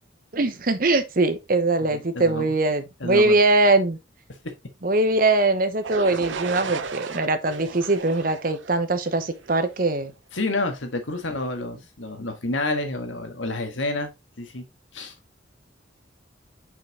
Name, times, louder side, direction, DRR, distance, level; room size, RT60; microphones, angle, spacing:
voice 1, 0.3-4.0 4.8-10.1, right 2 dB, 50° right, 0.9 m, -22 dB
voice 2, 1.9-2.5 3.0-3.4 10.3-14.1 14.4-14.6 14.9-15.1, left 2 dB, 85° left, 1.7 m, -29 dB
sound 1, 5.8-9.7, right 5 dB, 80° right, 0.7 m, -34 dB
5.9 x 5.9 x 3.0 m
head